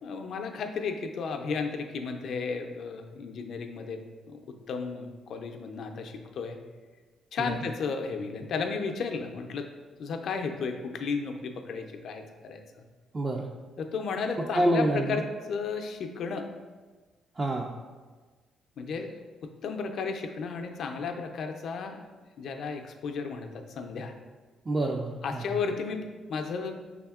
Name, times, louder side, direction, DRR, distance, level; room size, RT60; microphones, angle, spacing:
voice 1, 0.0-6.6 7.3-9.7 10.0-12.6 13.8-16.5 18.8-19.1 19.4-22.1 22.4-24.1 25.2-26.8, left 5 dB, 65° left, 5 dB, 0.4 m, -34 dB
voice 2, 13.1-13.5 14.5-15.2 17.4-17.7 24.7-25.6, right 1 dB, 30° right, 0 dB, 0.3 m, -27 dB
5.4 x 3.5 x 2.3 m, 1.3 s
cardioid pair, 90°, 0 cm